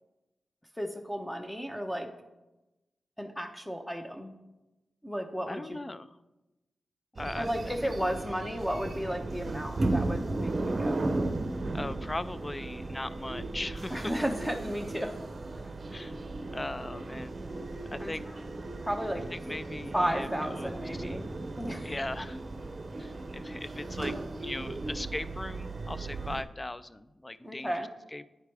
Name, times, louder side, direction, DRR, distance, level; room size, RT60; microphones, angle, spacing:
voice 1, 0.8-2.1 3.2-4.3 5.0-5.6 7.4-11.0 13.9-15.2 15.6-15.7 18.0-18.1 18.8-19.3 19.9-21.3 21.6-21.9 27.4-27.9, equal, 10° left, 4 dB, 0.9 m, -33 dB
voice 2, 5.5-6.2 7.2-7.5 7.8-7.9 11.7-14.2 15.9-16.2 16.5-17.3 17.9-18.3 19.3-21.0 21.8-22.4 23.0-24.2 24.4-28.3, left 2 dB, 25° left, 14 dB, 0.4 m, -39 dB
sound 1, 7.2-26.4, right 2 dB, 50° right, 0.6 m, -35 dB
9.9 x 4.6 x 3.4 m, 1.0 s
cardioid pair, 50°, 0 cm